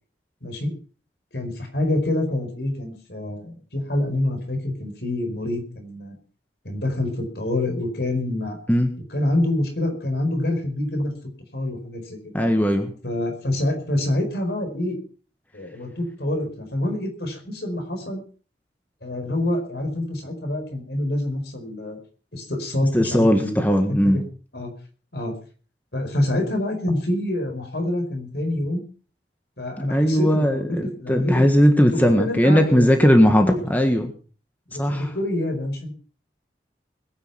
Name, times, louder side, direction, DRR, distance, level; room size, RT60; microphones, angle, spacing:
voice 1, 1.3-6.1 6.6-8.6 9.1-11.1 11.5-12.2 13.0-15.0 15.5-18.2 19.0-22.0 22.3-23.7 24.1-24.2 24.5-24.7 25.1-25.3 25.9-28.8 29.6-31.5 31.8-32.9 33.5-33.6 34.7-35.9, left 1 dB, 65° left, 4 dB, 5.0 m, -26 dB
voice 2, 12.3-12.9 22.9-24.2 29.9-34.1 34.7-35.1, equal, 10° left, 5 dB, 1.6 m, -18 dB
21.5 x 9.6 x 5.8 m, 0.41 s
head